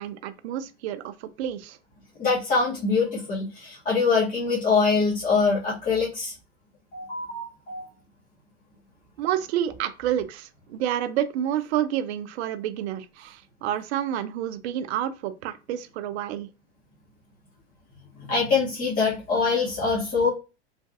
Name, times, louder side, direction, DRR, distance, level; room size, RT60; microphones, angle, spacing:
voice 1, 0.0-1.8 9.2-16.5, right 11 dB, 70° right, 0.5 m, -29 dB
voice 2, 2.2-6.3 6.9-7.8 18.1-20.3, left 4 dB, 25° left, 1.0 m, -24 dB
3.2 x 2.5 x 2.4 m
hypercardioid pair, 90°, 34 cm